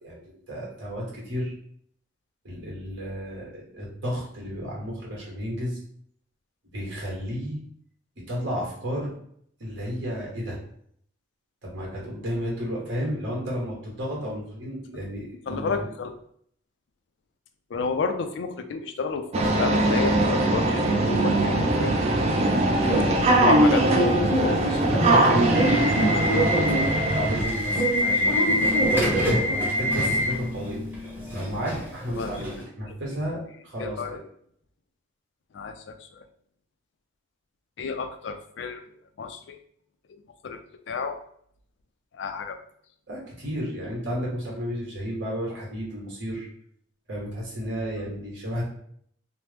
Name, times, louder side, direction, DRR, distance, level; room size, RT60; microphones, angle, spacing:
voice 1, 0.0-1.5 2.4-5.8 6.7-7.6 8.3-9.1 9.6-10.6 11.6-15.7 24.8-28.8 29.5-30.9 31.3-34.2 43.1-46.4 47.1-48.6, equal, 75° right, -4 dB, 1.3 m, -32 dB
voice 2, 15.5-16.1 17.7-22.0 23.0-24.8 32.1-32.4 32.9-33.0 33.8-34.2 35.5-36.3 37.8-38.8 39.2-39.6 40.4-40.6 40.9-41.2 42.1-42.6, left 5 dB, 65° left, 7 dB, 0.3 m, -31 dB
sound 1, 19.3-27.4, right 2 dB, 35° right, 0.4 m, -21 dB
Subway metro underground / Alarm, 22.8-32.6, equal, 10° right, 0.8 m, -25 dB
3.0 x 2.0 x 3.2 m, 0.65 s
head